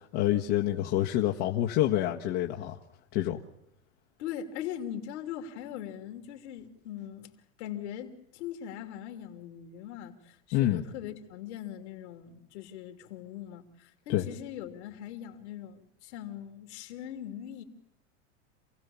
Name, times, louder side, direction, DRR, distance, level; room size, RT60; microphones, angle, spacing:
voice 1, 0.0-2.8 3.1-3.4 10.5-10.8 14.1-14.2, left 13 dB, 60° left, 1.5 m, -27 dB
voice 2, 4.2-7.3 7.6-17.6, left 10 dB, 75° left, 3.1 m, -41 dB
28.0 x 16.0 x 7.2 m
supercardioid pair, 115°, 34 cm